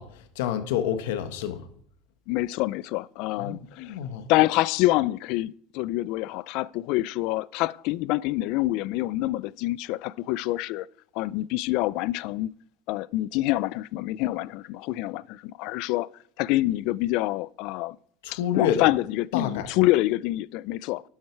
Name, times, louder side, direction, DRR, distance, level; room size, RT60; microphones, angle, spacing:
voice 1, 0.0-1.7 3.4-4.2 18.2-18.9 19.3-19.7, left 9 dB, 80° left, 1.4 m, -28 dB
voice 2, 2.3-3.9 4.3-10.9 11.2-12.5 12.9-16.1 16.4-18.0 18.3-21.0, left 18 dB, 50° left, 0.3 m, -26 dB
12.0 x 8.7 x 4.6 m
cardioid pair, 165°, 0 cm